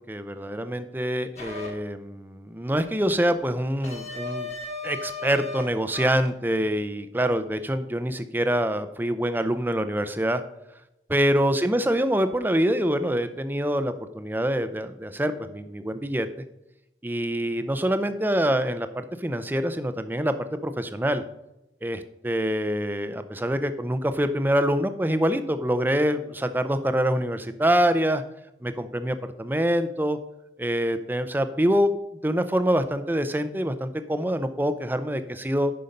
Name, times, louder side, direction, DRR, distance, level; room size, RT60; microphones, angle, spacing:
voice 1, 0.1-4.5 4.8-10.4 11.1-16.3 17.0-21.2 21.8-28.2 28.6-30.2 30.6-31.9 32.2-35.7, equal, 10° right, 10 dB, 0.6 m, -25 dB
sound 1, 1.4-1.7 3.8-5.6 5.9-6.3, left 3 dB, 40° left, 1.9 m, -35 dB
10.5 x 5.7 x 5.2 m, 0.89 s
head